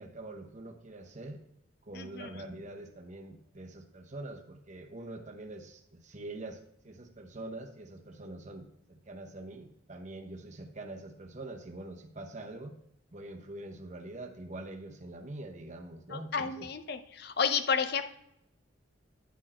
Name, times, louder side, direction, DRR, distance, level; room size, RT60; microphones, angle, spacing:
voice 1, 0.0-1.4 1.8-12.7 13.1-16.7, right 2 dB, 35° right, 4 dB, 0.8 m, -44 dB
voice 2, 1.9-2.3 16.1-18.0, left 6 dB, 50° left, 9 dB, 0.6 m, -31 dB
10.5 x 4.5 x 4.3 m, 0.80 s
head